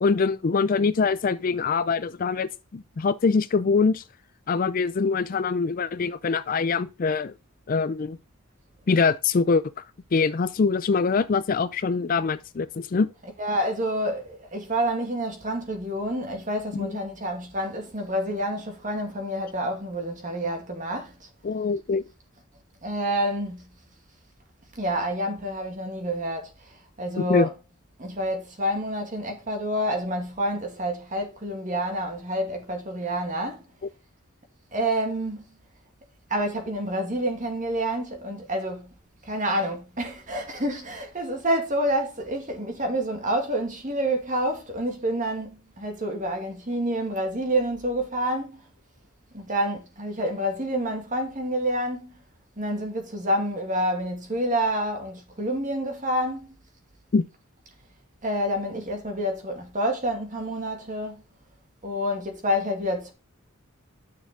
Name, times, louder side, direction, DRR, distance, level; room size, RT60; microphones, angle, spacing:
voice 1, 0.0-4.0 4.5-7.3 7.7-8.2 8.9-9.8 10.1-13.1 16.7-17.0 21.4-22.0 27.2-27.5 57.1-57.2, left 4 dB, 40° left, 0.4 m, -24 dB
voice 2, 13.2-21.3 22.8-23.6 24.8-27.6 28.0-33.6 34.7-35.5 36.3-38.9 39.2-48.6 49.3-52.1 52.6-56.5 58.2-61.2 61.8-63.1, equal, 35° right, 2.1 m, -28 dB
9.5 x 6.4 x 3.8 m
head